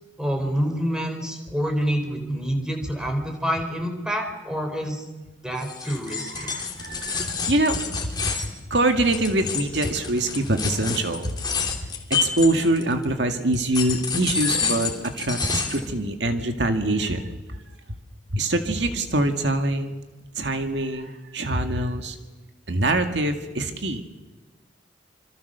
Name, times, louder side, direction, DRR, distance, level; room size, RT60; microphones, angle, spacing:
voice 1, 0.2-5.1 5.4-6.5, equal, 5° right, 4 dB, 4.0 m, -27 dB
sound 1, 5.6-13.0 13.5-15.9, left 5 dB, 25° left, 3.3 m, -29 dB
voice 2, 5.9-11.4 11.6-11.8 12.2-17.3 18.3-19.9 20.4-22.2 22.7-24.0, right 2 dB, 70° right, 6 dB, 2.0 m, -24 dB
26.5 x 26.5 x 6.8 m, 1.2 s
head